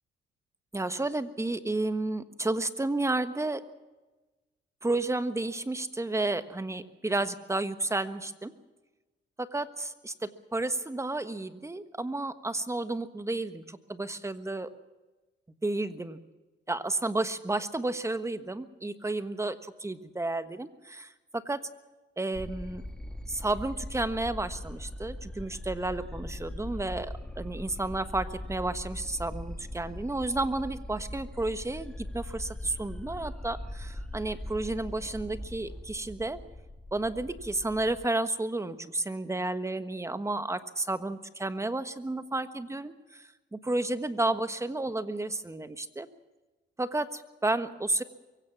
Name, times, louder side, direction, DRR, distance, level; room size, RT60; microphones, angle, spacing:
voice 1, 0.7-3.6 4.8-8.5 9.4-14.7 15.6-16.2 16.7-21.6 22.2-22.8 23.3-36.4 36.9-46.1 46.8-48.0, right 2 dB, 15° right, 11 dB, 1.4 m, -32 dB
sound 1, 22.3-38.1, left 1 dB, 5° left, 1.7 m, -41 dB
23.5 x 16.5 x 7.3 m, 1.1 s
cardioid pair, 90°, 20 cm